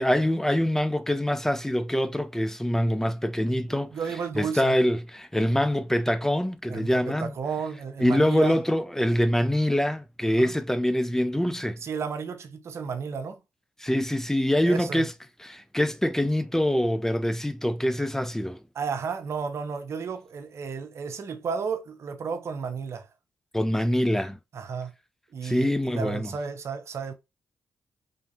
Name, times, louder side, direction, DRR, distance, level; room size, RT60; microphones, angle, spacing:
voice 1, 0.0-3.9 4.4-7.3 8.0-11.8 13.8-15.1 15.4-18.6 23.5-24.4 25.4-26.3, left 1 dB, 10° left, 0.5 m, -24 dB
voice 2, 3.9-4.8 6.7-8.6 10.3-10.5 11.8-13.4 14.6-15.1 18.7-23.1 24.5-24.9 25.3-27.1, right 6 dB, 60° right, 0.8 m, -33 dB
3.5 x 2.7 x 3.8 m
supercardioid pair, 45°, 5 cm